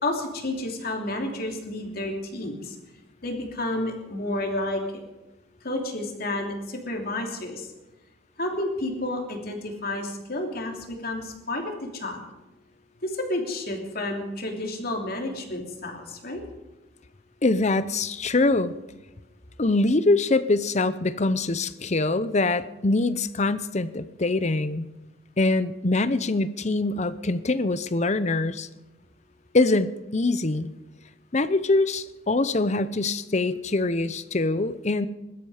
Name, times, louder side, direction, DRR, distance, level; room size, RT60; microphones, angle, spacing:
voice 1, 0.0-2.8 3.2-5.0 5.6-7.7 8.4-12.2 13.0-16.4, left 1 dB, 50° left, 2 dB, 3.0 m, -30 dB
voice 2, 17.4-18.8 19.6-24.9 25.4-28.7 29.5-30.7 31.3-35.1, left 2 dB, 35° left, 14 dB, 0.7 m, -24 dB
21.5 x 12.5 x 5.0 m, 1.1 s
head